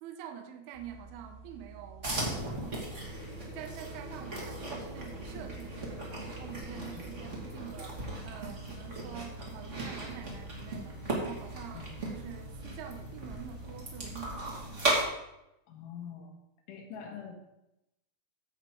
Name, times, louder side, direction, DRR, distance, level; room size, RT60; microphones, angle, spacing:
voice 1, 0.0-3.3 3.5-15.0, right 9 dB, 75° right, 6 dB, 2.5 m, -47 dB
sound 1, 0.7-14.3, right 4 dB, 65° left, 2.6 m, -51 dB
sound 2, 2.0-15.0, right 1 dB, 35° right, 1.1 m, -37 dB
sound 3, 3.0-8.1, right 1 dB, 55° right, 3.7 m, -49 dB
voice 2, 6.7-7.1 11.7-11.9 15.7-16.4 16.7-17.3, left 7 dB, 85° left, 2 dB, 3.9 m, -44 dB
15.5 x 5.7 x 4.5 m, 0.88 s
omnidirectional pair, 5.3 m